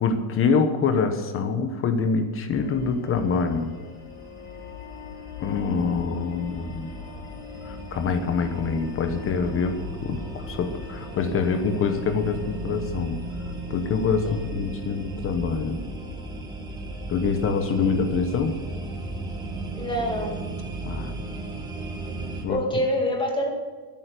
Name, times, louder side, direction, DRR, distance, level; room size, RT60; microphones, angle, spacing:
voice 1, 0.0-3.7 5.4-7.0 7.6-13.2 13.7-15.8 17.1-18.6 20.8-21.1 22.4-22.6, left 5 dB, 25° left, 8 dB, 1.1 m, -25 dB
sound 1, 2.5-17.8, left 6 dB, 60° left, 2.8 m, -42 dB
sound 2, 3.1-22.4, right 2 dB, 10° right, 1.6 m, -36 dB
voice 2, 19.7-20.4 22.5-23.5, equal, 10° left, 1 dB, 2.3 m, -26 dB
13.5 x 11.0 x 6.9 m, 1.4 s
cardioid pair, 165°, 48 cm